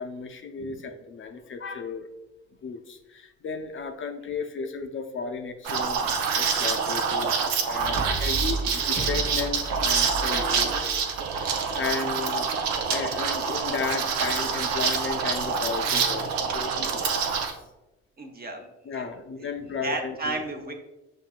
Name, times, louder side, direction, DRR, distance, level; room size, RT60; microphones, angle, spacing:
voice 1, 0.0-2.1 2.6-10.9 11.3-17.3 18.9-20.4, left 5 dB, 40° left, 5 dB, 0.5 m, -34 dB
Liquid, 5.7-17.5, right 6 dB, 85° right, 0.5 m, -26 dB
Brass instrument, 7.8-12.0, right 3 dB, 70° right, 1.3 m, -34 dB
voice 2, 18.2-19.1 19.4-20.8, right 2 dB, 30° right, 3 dB, 0.8 m, -34 dB
5.9 x 2.6 x 2.4 m, 1.0 s
hypercardioid pair, 45°, 30 cm